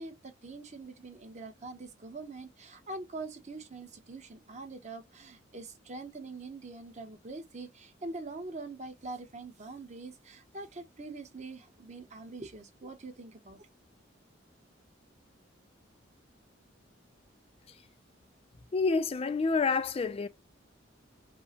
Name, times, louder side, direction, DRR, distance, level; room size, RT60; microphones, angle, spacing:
voice 1, 0.0-13.7, right 3 dB, 35° right, 0.8 m, -44 dB
voice 2, 18.7-20.3, left 4 dB, 30° left, 0.3 m, -28 dB
5.4 x 2.0 x 2.8 m
head